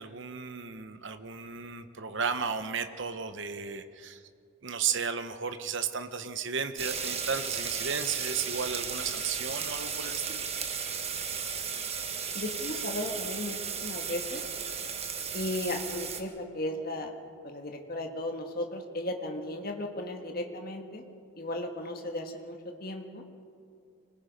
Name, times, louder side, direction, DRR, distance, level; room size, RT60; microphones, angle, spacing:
voice 1, 0.0-4.2 4.6-10.4, right 6 dB, 55° right, 9 dB, 1.0 m, -34 dB
sound 1, 6.8-16.2, right 6 dB, 30° right, 1.4 m, -35 dB
voice 2, 12.3-14.4 15.3-17.1 17.4-21.0 21.4-23.2, left 1 dB, 45° left, 3 dB, 1.6 m, -35 dB
25.5 x 20.0 x 5.3 m, 2.4 s
head